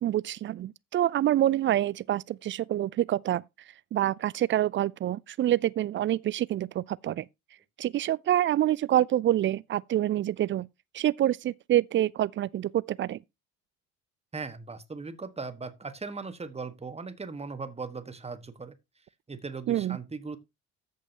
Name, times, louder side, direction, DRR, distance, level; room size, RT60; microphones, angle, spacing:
voice 1, 0.0-3.4 3.9-7.3 7.8-10.7 10.9-13.2 19.7-20.0, right 12 dB, 30° right, 0.4 m, -26 dB
voice 2, 14.3-18.7 19.3-20.4, right 4 dB, 15° right, 1.4 m, -38 dB
14.0 x 6.9 x 2.9 m
figure-of-eight pair, 50°, 39 cm